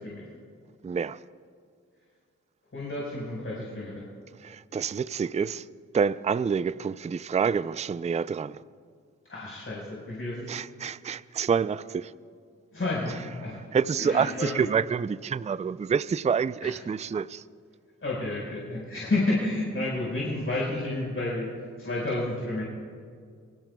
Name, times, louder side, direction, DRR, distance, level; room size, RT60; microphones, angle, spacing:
voice 1, 0.8-1.2 4.4-5.7 5.9-8.6 10.5-12.1 13.7-17.4, right 6 dB, 20° right, 0.4 m, -27 dB
voice 2, 2.7-4.0 9.2-10.5 12.7-13.6 13.9-14.5 16.6-16.7 18.0-21.5 21.8-22.6, left 2 dB, 40° left, 4.8 m, -30 dB
28.0 x 17.5 x 2.3 m
supercardioid pair, 40°, 32 cm